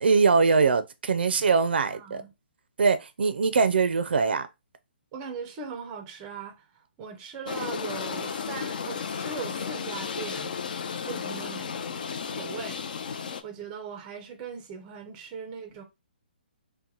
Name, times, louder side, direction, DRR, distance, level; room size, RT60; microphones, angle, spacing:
voice 1, 0.0-2.2 2.8-4.5, right 5 dB, 70° right, 0.5 m, -22 dB
voice 2, 1.8-2.3 5.1-6.7 7.0-10.5 11.0-13.0 13.4-15.8, right 6 dB, 15° right, 0.5 m, -39 dB
sound 1, 7.5-13.4, left 6 dB, 50° left, 0.4 m, -34 dB
2.9 x 2.1 x 3.8 m
hypercardioid pair, 165°, 6 cm